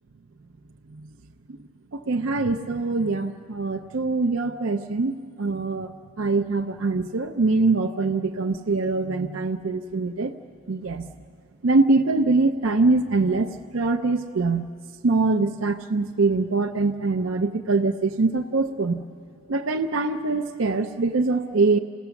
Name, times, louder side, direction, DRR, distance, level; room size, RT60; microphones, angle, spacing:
voice 1, 1.9-5.9 6.2-10.3 10.7-11.1 11.6-14.7 15.0-19.0 19.5-21.8, right 3 dB, 60° right, 4 dB, 0.6 m, -23 dB
28.5 x 16.5 x 7.1 m, 2.3 s
head